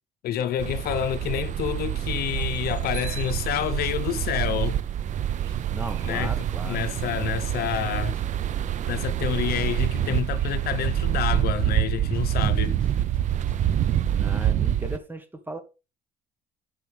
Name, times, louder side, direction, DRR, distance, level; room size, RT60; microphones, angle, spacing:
voice 1, 0.2-4.8 6.0-6.3 6.6-8.2 8.9-12.8, left 10 dB, 65° left, 0.7 m, -28 dB
sound 1, 0.6-15.0, right 11 dB, 45° right, 0.5 m, -26 dB
sound 2, 3.5-14.1, right 1 dB, 5° left, 1.2 m, -50 dB
sound 3, 5.2-10.8, right 8 dB, 85° right, 1.2 m, -53 dB
voice 2, 5.7-6.8 14.1-15.6, right 1 dB, 10° right, 1.1 m, -36 dB
8.3 x 5.6 x 3.3 m
cardioid pair, 110°, 17 cm